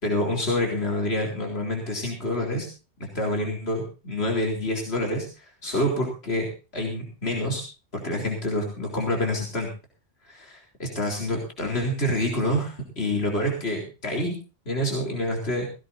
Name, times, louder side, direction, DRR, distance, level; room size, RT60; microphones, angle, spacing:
voice 1, 0.0-2.7 3.0-7.6 7.9-9.7 10.2-14.3 14.7-15.7, left 1 dB, 65° left, 1 dB, 4.1 m, -27 dB
19.0 x 16.5 x 2.7 m, 0.33 s
omnidirectional pair, 1.1 m